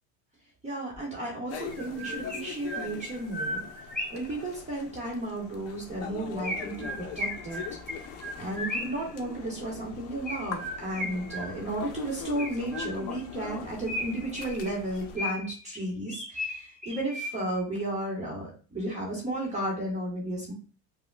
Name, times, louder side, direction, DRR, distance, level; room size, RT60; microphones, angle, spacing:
voice 1, 0.6-3.6 4.1-7.6 7.9-8.0 8.4-20.5, right 1 dB, 20° right, -2 dB, 1.1 m, -33 dB
Chirp tweet, 0.9-1.0 1.7-4.3 6.4-9.1 10.3-11.8 12.4-13.3 13.9-15.6 16.1-17.6, left 1 dB, ahead, 1.0 m, -36 dB
sound 1, 1.5-15.2, left 6 dB, 50° left, 0.6 m, -42 dB
5.0 x 2.2 x 2.2 m, 0.36 s
cardioid pair, 130°, 33 cm